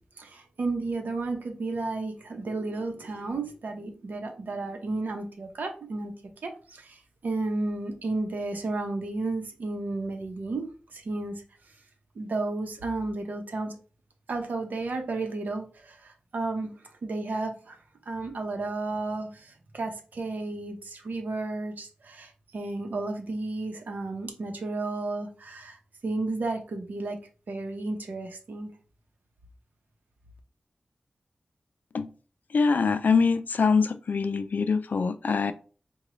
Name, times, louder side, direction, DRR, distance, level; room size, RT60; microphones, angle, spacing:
voice 1, 0.2-6.1 6.4-11.4 12.1-13.7 14.3-16.7 17.0-17.8 18.1-25.8 26.0-27.2 27.5-28.7, right 2 dB, 85° right, 0.8 m, -33 dB
voice 2, 32.5-35.5, left 5 dB, 75° left, 0.4 m, -24 dB
4.9 x 2.3 x 3.0 m
wide cardioid pair, 100°, 3 cm